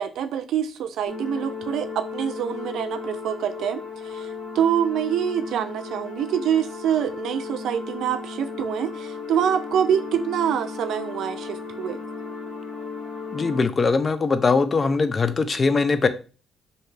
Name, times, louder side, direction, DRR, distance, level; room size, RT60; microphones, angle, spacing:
voice 1, 0.0-4.3 4.5-12.0, right 9 dB, 75° right, 0.4 m, -25 dB
sound 1, 1.1-13.6, left 4 dB, 65° left, 1.1 m, -35 dB
voice 2, 13.3-16.1, left 4 dB, 35° left, 0.4 m, -21 dB
3.2 x 2.8 x 3.2 m
cardioid pair, 90°, 0 cm